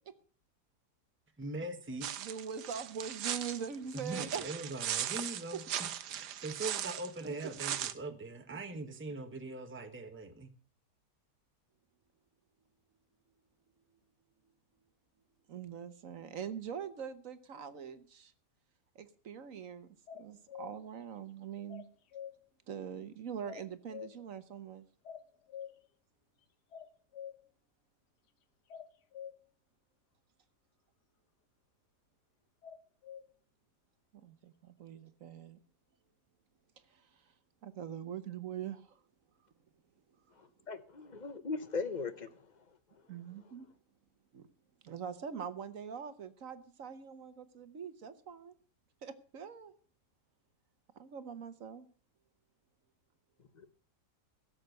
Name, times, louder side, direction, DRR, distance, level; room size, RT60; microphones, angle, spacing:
voice 1, 1.4-2.1 4.0-10.5, right 2 dB, 10° right, 1.1 m, -41 dB
sound 1, 2.0-7.9, right 10 dB, 75° right, 1.4 m, -38 dB
voice 2, 2.2-4.6 7.2-7.3 8.5-8.6 15.5-18.3 18.9-19.9 20.2-21.9 22.7-24.8 34.2-35.6 36.9-37.0 37.6-39.0 43.1-43.7 44.3-44.5 44.8-48.5 49.0-49.7 51.0-51.9, right 7 dB, 55° right, 1.3 m, -43 dB
sound 2, 20.1-20.8 21.7-22.3 23.5-24.2 25.1-25.8 26.7-27.4 28.7-29.3 32.6-33.3, left 8 dB, 75° left, 1.5 m, -46 dB
voice 3, 40.7-42.3 53.6-53.7, left 4 dB, 30° left, 0.9 m, -38 dB
16.5 x 7.6 x 6.5 m
omnidirectional pair, 1.8 m